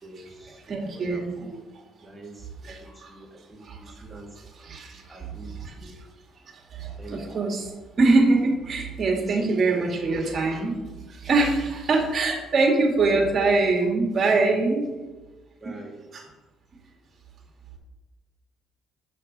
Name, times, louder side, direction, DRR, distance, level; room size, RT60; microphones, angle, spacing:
voice 1, 0.0-1.7 2.0-4.4 4.9-6.0 7.0-7.4 9.3-9.9 15.6-16.0, right 2 dB, 15° right, -2 dB, 2.2 m, -44 dB
voice 2, 0.6-1.3 2.6-3.1 3.6-3.8 4.4-5.3 5.6-5.9 6.7-10.8 11.1-14.9 16.1-16.2, right 3 dB, 50° right, 1 dB, 2.0 m, -23 dB
6.5 x 5.6 x 5.3 m, 1.2 s
supercardioid pair, 75°, 0 cm